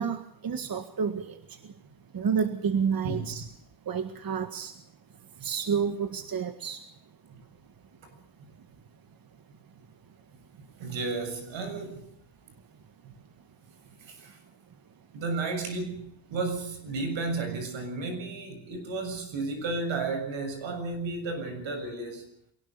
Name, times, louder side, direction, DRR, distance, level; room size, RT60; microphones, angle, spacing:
voice 1, 0.0-1.8 2.1-3.5 3.9-4.8 5.1-6.9 7.2-7.4 8.6-8.7, right 6 dB, 50° right, 8 dB, 1.8 m, -30 dB
voice 2, 10.8-12.1 13.0-13.1 14.1-14.4 15.1-22.3, right 3 dB, 85° right, 7 dB, 7.1 m, -33 dB
23.0 x 18.5 x 7.0 m, 0.70 s
cardioid pair, 85°, 45 cm